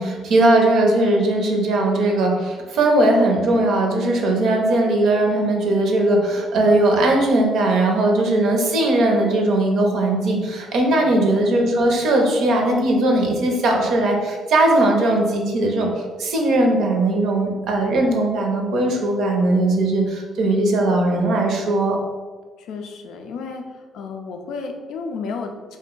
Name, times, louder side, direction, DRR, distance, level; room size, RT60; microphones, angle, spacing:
voice 1, 0.0-15.9 16.2-22.0, right 2 dB, 70° right, 1 dB, 0.6 m, -19 dB
voice 2, 22.6-25.8, left 4 dB, 70° left, 4 dB, 0.4 m, -32 dB
2.6 x 2.1 x 3.7 m, 1.4 s
hypercardioid pair, 55°, 0 cm